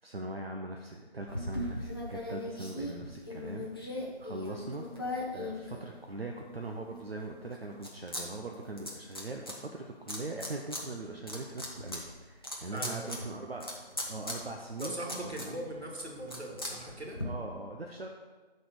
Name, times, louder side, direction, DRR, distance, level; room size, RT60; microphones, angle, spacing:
voice 1, 0.0-5.1 5.3-15.0 15.2-15.5 17.2-18.1, right 2 dB, 65° right, 2 dB, 1.0 m, -41 dB
sound 1, 1.3-6.3 6.8-8.2 8.5-9.5 10.1-10.8 11.2-17.2, left 1 dB, 20° left, 0.9 m, -39 dB
voice 2, 12.7-13.4 14.8-17.3, right 1 dB, 80° right, 0 dB, 2.4 m, -40 dB
9.3 x 4.3 x 6.7 m, 1.3 s
figure-of-eight pair, 170°, 32 cm